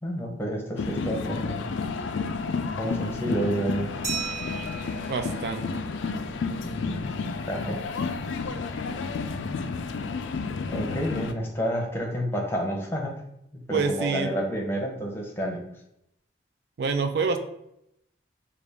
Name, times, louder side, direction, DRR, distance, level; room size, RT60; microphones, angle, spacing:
voice 1, 0.0-1.6 2.8-3.9 6.6-7.1 7.5-7.8 10.7-13.1 13.7-15.6, equal, 15° left, -1 dB, 0.7 m, -29 dB
sound 1, 0.8-11.3, left 4 dB, 90° left, 0.4 m, -31 dB
Glass, 4.0-6.5, right 6 dB, 40° right, 1.2 m, -37 dB
voice 2, 5.1-5.8 13.7-14.3 16.8-17.4, right 4 dB, 60° right, 7 dB, 0.4 m, -27 dB
4.9 x 2.4 x 3.4 m, 0.79 s
head